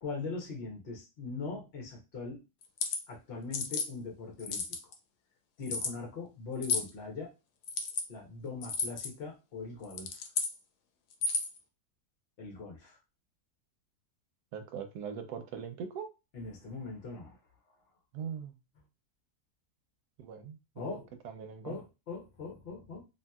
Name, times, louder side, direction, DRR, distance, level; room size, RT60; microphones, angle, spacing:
voice 1, 0.0-2.4 3.1-4.6 5.6-7.3 8.1-10.2 12.4-13.0 16.3-17.4 20.8-21.1 21.6-23.0, left 4 dB, 50° left, 0 dB, 0.8 m, -41 dB
sound 1, 2.6-3.0 3.5-3.9 4.4-4.9 5.7-5.9 6.6-6.9 7.6-8.0 8.6-9.1 9.8-10.5 11.1-11.6, left 4 dB, 85° left, 1.1 m, -33 dB
voice 2, 14.5-16.1 18.1-18.6 20.2-21.8, right 7 dB, 85° right, 7 dB, 1.1 m, -41 dB
2.7 x 2.6 x 2.3 m, 0.27 s
omnidirectional pair, 1.7 m